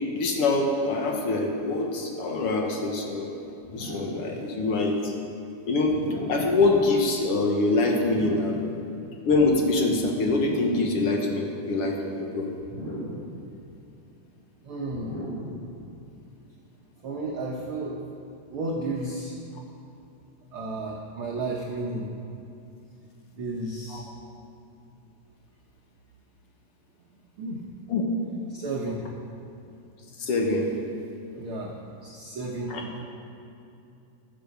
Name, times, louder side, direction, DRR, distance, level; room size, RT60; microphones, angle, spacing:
voice 1, 0.1-3.4 3.7-5.1 5.7-6.0 6.3-8.6 9.2-12.5 23.9-24.0 27.9-28.0 30.2-30.7 31.3-31.4 32.7-32.8, left 3 dB, 60° left, 1 dB, 1.7 m, -24 dB
sound 1, 3.6-4.3 5.9-6.6 8.0-8.7 10.3-11.0 12.6-13.3 14.9-15.6, equal, 5° left, 3.2 m, -36 dB
voice 2, 14.6-15.1 17.0-19.4 20.5-22.1 23.3-24.0 27.4-27.6 28.5-29.1 31.4-33.0, right 2 dB, 60° right, -3 dB, 1.4 m, -33 dB
15.5 x 6.9 x 6.6 m, 2.8 s
omnidirectional pair, 3.6 m